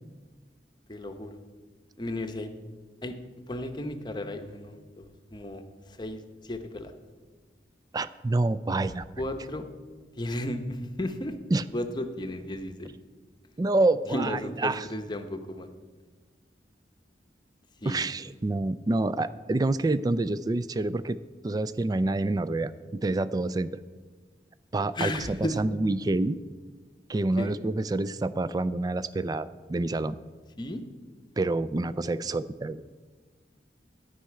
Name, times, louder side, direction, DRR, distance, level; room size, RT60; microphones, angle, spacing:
voice 1, 0.9-1.4 2.0-2.5 3.0-3.2 3.5-5.6 5.9-6.9 9.2-9.7 10.2-11.3 11.7-12.9 14.1-15.7 17.8-18.0 24.9-25.7 27.4-27.5 30.6-30.8, left 1 dB, 25° left, 6 dB, 0.8 m, -34 dB
voice 2, 7.9-9.1 11.5-11.6 13.6-14.9 17.9-21.2 21.4-23.7 24.7-26.4 27.1-30.2 31.4-32.8, right 2 dB, 20° right, 15 dB, 0.3 m, -27 dB
11.5 x 5.6 x 8.9 m, 1.4 s
head